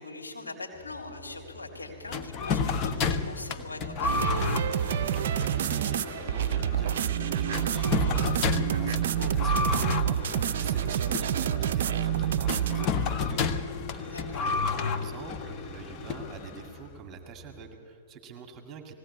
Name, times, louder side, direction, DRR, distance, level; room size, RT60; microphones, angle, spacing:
voice 1, 0.0-4.6 14.0-14.4, left 2 dB, 85° left, 1 dB, 3.3 m, -41 dB
sound 1, 0.7-17.7, equal, 10° left, 6.5 m, -52 dB
sound 2, 2.1-16.8, left 5 dB, 35° left, 1.1 m, -31 dB
sound 3, 4.0-12.9, right 11 dB, 65° right, 0.5 m, -28 dB
voice 2, 5.1-13.6 13.9-18.9, right 6 dB, 30° right, 5 dB, 1.9 m, -46 dB
20.0 x 17.0 x 8.5 m, 2.5 s
hypercardioid pair, 110°, 0 cm